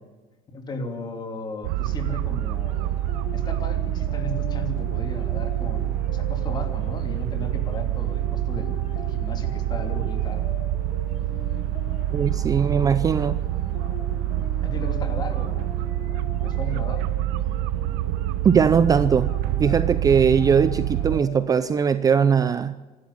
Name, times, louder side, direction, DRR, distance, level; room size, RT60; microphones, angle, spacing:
voice 1, 0.5-2.9 3.3-10.5 14.6-15.8 16.4-17.1, left 2 dB, 25° left, 6 dB, 3.0 m, -36 dB
sound 1, 1.6-21.2, right 13 dB, 90° right, 0.7 m, -26 dB
sound 2, 2.6-21.6, left 4 dB, 45° left, 4.3 m, -42 dB
voice 2, 12.1-13.4 18.4-19.3 19.6-22.7, right 6 dB, 25° right, 13 dB, 0.6 m, -20 dB
26.5 x 12.5 x 8.5 m, 1.3 s
cardioid pair, 160°, 16 cm